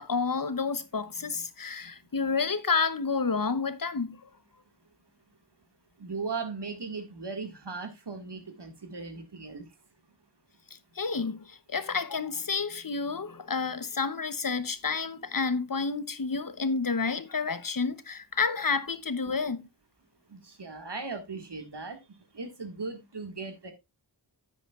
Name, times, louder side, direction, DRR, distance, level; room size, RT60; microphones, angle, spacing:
voice 1, 0.0-4.3 10.9-19.6, left 4 dB, 50° left, 0.9 m, -30 dB
voice 2, 6.0-9.7 20.3-22.0 22.3-23.7, right 4 dB, 75° right, 2.0 m, -38 dB
10.0 x 8.4 x 2.4 m
wide cardioid pair, 50°, 42 cm